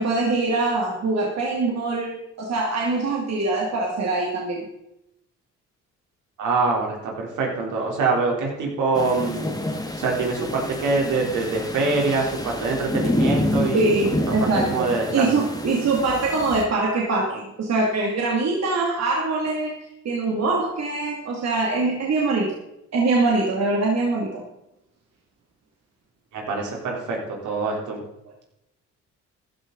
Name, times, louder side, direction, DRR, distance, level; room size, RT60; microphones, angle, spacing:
voice 1, 0.0-4.6 13.7-19.8 20.0-22.5 22.9-24.4, right 3 dB, 60° right, -2 dB, 2.7 m, -23 dB
voice 2, 6.4-9.5 10.0-13.9 14.4-15.3 26.3-28.0, right 3 dB, 80° right, -1 dB, 3.8 m, -24 dB
sound 1, 8.9-16.6, left 1 dB, 10° left, 1.9 m, -28 dB
14.5 x 11.5 x 4.0 m, 0.84 s
cardioid pair, 90°, 30 cm